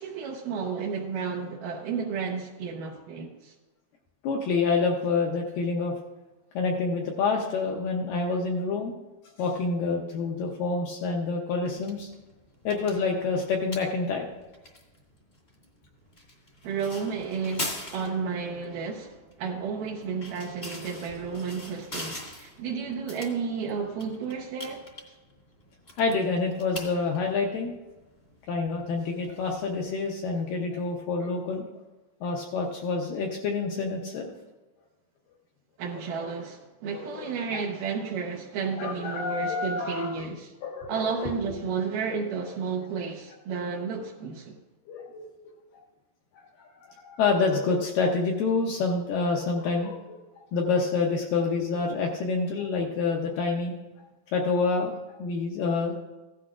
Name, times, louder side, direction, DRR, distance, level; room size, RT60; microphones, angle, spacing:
voice 1, 0.0-3.5 16.6-24.9 35.8-40.5 40.9-44.6, right 5 dB, 75° right, 2.0 m, -32 dB
voice 2, 4.2-5.9 6.6-8.9 9.4-12.1 12.6-14.3 26.0-27.8 28.5-31.6 32.2-34.3 37.1-37.3 37.5-37.6 38.8-40.1 40.6-41.3 44.9-45.3 46.8-50.2 50.5-53.7 54.3-55.9, left 4 dB, 75° left, 2.1 m, -27 dB
sound 1, 11.6-30.0, left 1 dB, 30° left, 1.1 m, -43 dB
16.0 x 12.0 x 2.5 m
omnidirectional pair, 5.0 m